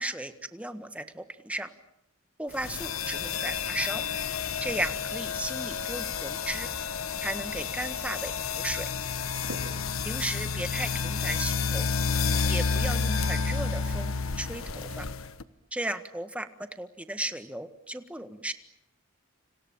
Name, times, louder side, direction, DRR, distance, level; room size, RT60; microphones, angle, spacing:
voice 1, 0.0-1.7 2.4-4.0 4.6-6.7 7.2-8.9 10.0-11.9 12.5-15.1 15.7-18.5, right 1 dB, 5° right, 9 dB, 1.6 m, -35 dB
sound 1, 2.6-15.4, left 5 dB, 70° left, 1.4 m, -30 dB
sound 2, 6.2-7.8 8.3-8.9 9.2-10.7, right 2 dB, 75° right, 7.9 m, -48 dB
29.5 x 27.0 x 7.4 m, 0.78 s
head